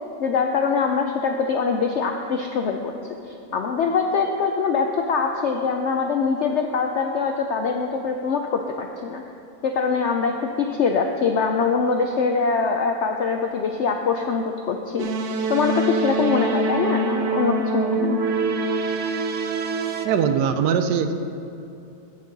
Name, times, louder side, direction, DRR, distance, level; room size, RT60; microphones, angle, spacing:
voice 1, 0.2-2.9 3.5-9.2 9.6-15.1 15.5-18.2, left 5 dB, 80° left, 3 dB, 0.6 m, -23 dB
sound 1, 15.0-20.1, right 3 dB, 60° right, 0.8 m, -25 dB
voice 2, 20.0-21.1, right 7 dB, 85° right, 9 dB, 1.2 m, -21 dB
16.0 x 5.3 x 3.9 m, 2.8 s
omnidirectional pair, 1.7 m